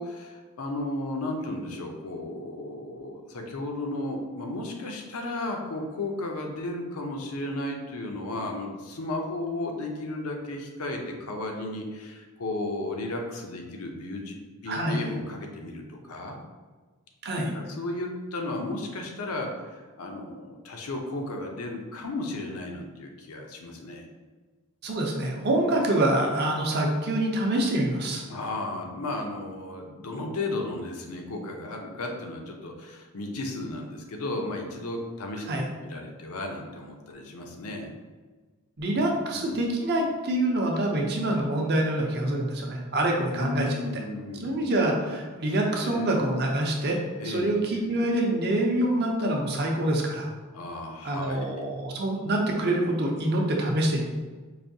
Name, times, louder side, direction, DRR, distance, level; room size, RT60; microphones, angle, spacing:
voice 1, 0.0-14.4 14.6-16.4 17.4-24.1 28.3-37.9 39.0-39.1 39.3-39.5 43.3-44.9 45.8-46.1 47.2-48.0 50.5-51.6, left 2 dB, 75° left, 2 dB, 0.6 m, -34 dB
voice 2, 14.7-15.1 17.2-17.5 24.8-28.2 35.5-35.7 38.8-43.8 44.3-47.0 47.2-50.3 51.0-54.1, right 1 dB, 45° right, 0 dB, 0.6 m, -26 dB
4.8 x 2.6 x 2.7 m, 1.4 s
head